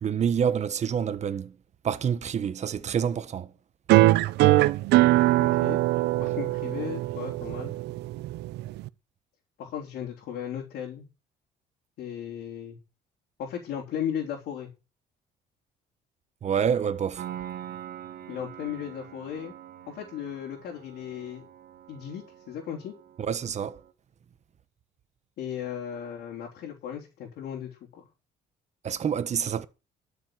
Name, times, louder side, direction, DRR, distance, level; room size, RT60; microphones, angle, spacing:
voice 1, 0.0-1.5 1.8-3.5 16.4-17.2 23.3-23.8 28.8-29.6, right 8 dB, 40° right, 1.4 m, -27 dB
sound 1, 3.9-8.9, right 17 dB, 85° right, 0.7 m, -22 dB
voice 2, 5.4-5.8 6.2-7.7 9.6-11.1 12.0-12.8 13.4-14.7 18.3-19.5 19.9-21.5 21.9-22.9 25.4-28.1, left 9 dB, 75° left, 4.1 m, -36 dB
Piano, 17.2-23.9, right 11 dB, 65° right, 2.2 m, -44 dB
12.5 x 7.1 x 8.0 m
cardioid pair, 110°, 17 cm